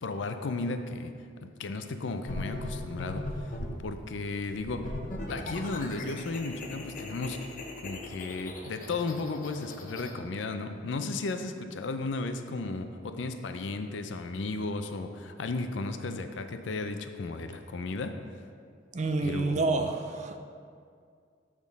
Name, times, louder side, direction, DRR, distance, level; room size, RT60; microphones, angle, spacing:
voice 1, 0.0-1.1 1.4-3.2 3.8-4.9 5.3-7.5 7.8-18.1 19.2-19.9, left 3 dB, 80° left, 8 dB, 0.5 m, -34 dB
sound 1, 2.3-3.9 4.6-10.1, left 1 dB, 45° left, 0.7 m, -38 dB
voice 2, 18.9-20.4, right 3 dB, 40° right, 6 dB, 0.4 m, -28 dB
8.4 x 3.7 x 5.1 m, 2.3 s
head